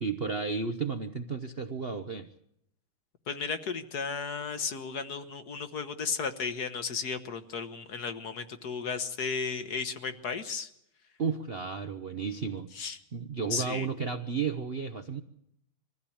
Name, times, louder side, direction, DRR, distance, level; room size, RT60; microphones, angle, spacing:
voice 1, 0.0-2.3 11.2-12.7 13.1-15.2, right 5 dB, 50° right, 8 dB, 0.7 m, -33 dB
voice 2, 3.3-10.7 12.7-13.0 13.5-13.9, left 5 dB, 55° left, 9 dB, 1.6 m, -34 dB
23.0 x 15.0 x 8.7 m, 0.77 s
omnidirectional pair, 2.2 m